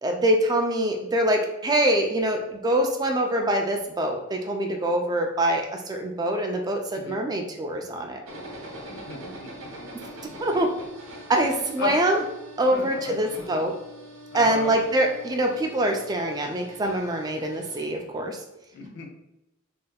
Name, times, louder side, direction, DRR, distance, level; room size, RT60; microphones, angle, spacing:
voice 1, 0.0-8.2 10.4-10.7 11.3-12.2 12.6-13.7 14.3-18.4, right 1 dB, 20° right, 3 dB, 0.3 m, -24 dB
sound 1, 8.3-17.9, right 1 dB, 70° right, 0.7 m, -43 dB
voice 2, 8.9-9.5 9.8-9.9 11.5-12.0 12.7-13.3 14.3-14.7 18.7-19.1, left 6 dB, 60° left, 2 dB, 0.6 m, -35 dB
3.4 x 3.2 x 2.2 m, 0.93 s
head